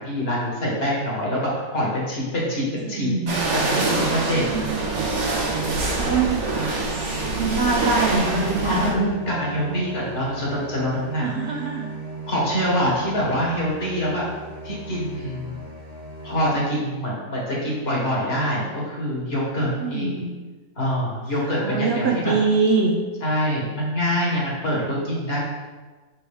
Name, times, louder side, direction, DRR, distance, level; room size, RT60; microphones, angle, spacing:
voice 1, 0.0-4.4 4.8-5.1 6.5-6.8 8.6-11.6 12.3-14.2 14.6-15.6 16.2-20.3 20.8-22.3 23.2-25.4, equal, 40° left, -5 dB, 1.6 m, -25 dB
voice 2, 2.9-3.5 4.4-4.7 6.0-6.5 6.8-8.8 9.2-9.3 9.7-9.8 11.2-11.9 19.8-20.2 21.6-22.9, right 4 dB, 70° right, 1 dB, 0.6 m, -24 dB
sound 1, 3.3-8.9, right 3 dB, 50° right, 1.2 m, -25 dB
sound 2, 7.9-16.4, right 2 dB, 30° right, 1.0 m, -37 dB
6.0 x 4.5 x 3.5 m, 1.3 s
omnidirectional pair, 1.7 m